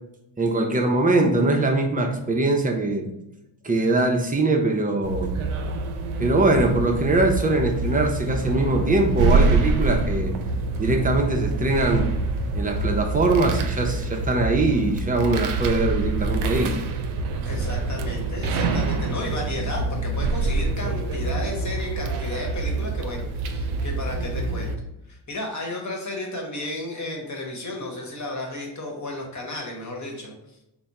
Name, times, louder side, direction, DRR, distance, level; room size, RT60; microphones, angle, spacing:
voice 1, 0.4-3.1 3.6-5.3 6.2-10.3 10.8-12.1 12.5-16.7, right 2 dB, 15° right, 2 dB, 0.6 m, -22 dB
sound 1, 5.0-24.7, right 3 dB, 85° right, 0.5 m, -26 dB
voice 2, 17.4-24.7 25.1-30.3, left 2 dB, 35° left, 0 dB, 1.2 m, -33 dB
3.4 x 2.2 x 4.1 m, 0.88 s
cardioid pair, 75°, 49 cm